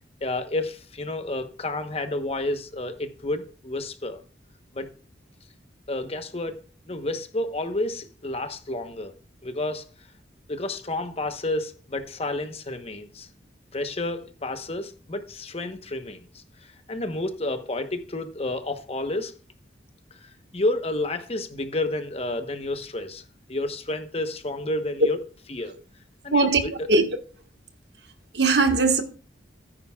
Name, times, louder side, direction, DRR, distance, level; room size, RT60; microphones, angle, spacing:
voice 1, 0.2-4.2 4.7-4.9 5.9-6.6 6.9-9.1 9.4-9.8 10.5-13.3 13.7-19.3 20.5-23.2 23.5-25.2 25.5-25.7 26.2-26.9, left 2 dB, 35° left, 1.0 m, -30 dB
voice 2, 28.3-29.0, right 3 dB, 60° right, 1.5 m, -19 dB
14.0 x 9.9 x 2.4 m
head